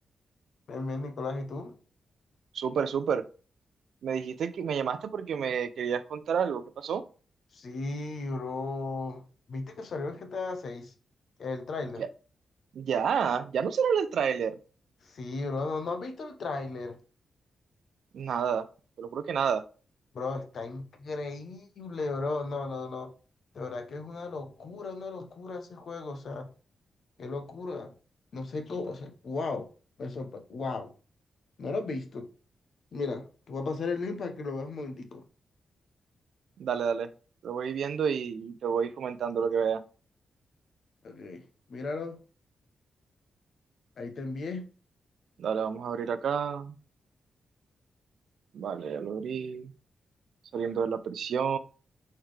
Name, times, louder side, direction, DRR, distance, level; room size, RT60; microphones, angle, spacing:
voice 1, 0.7-1.7 7.5-9.2 9.5-10.9 11.4-12.0 15.0-17.0 20.1-23.1 23.5-26.5 27.2-27.9 28.3-29.7 30.0-30.9 31.6-32.3 32.9-35.2 41.0-41.4 41.7-42.2 44.0-44.6, left 3 dB, 50° left, 0.8 m, -35 dB
voice 2, 2.5-3.2 4.0-7.0 12.0-12.1 12.7-14.6 18.1-18.7 19.0-19.7 36.6-37.1 37.4-39.8 45.4-46.8 48.5-49.7 50.5-51.6, right 7 dB, 70° right, 0.4 m, -29 dB
4.2 x 3.8 x 3.2 m
wide cardioid pair, 180°, 0 cm